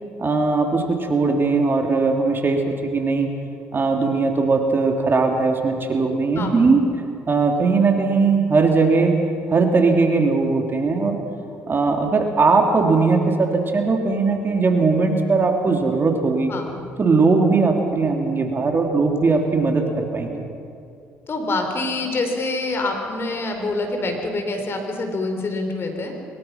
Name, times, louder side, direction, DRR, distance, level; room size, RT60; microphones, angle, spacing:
voice 1, 0.2-3.3 3.7-6.8 7.3-9.2 9.5-11.2 11.7-16.5 17.0-20.5, right 4 dB, 40° right, 3 dB, 3.4 m, -19 dB
voice 2, 6.4-6.8 16.5-16.8 21.3-26.1, left 2 dB, 45° left, 4 dB, 4.7 m, -26 dB
23.5 x 22.5 x 6.0 m, 2.5 s
hypercardioid pair, 60°, 6 cm